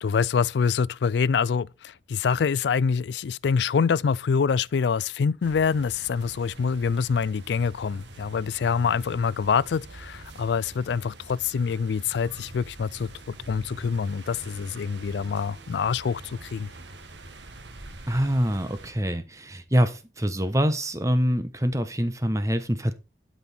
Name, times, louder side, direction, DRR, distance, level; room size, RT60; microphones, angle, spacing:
voice 1, 0.0-16.7, left 6 dB, 80° left, 0.4 m, -25 dB
sound 1, 5.4-18.9, right 1 dB, 90° right, 1.6 m, -44 dB
voice 2, 18.1-22.9, equal, 20° right, 1.0 m, -25 dB
12.0 x 5.6 x 4.3 m
head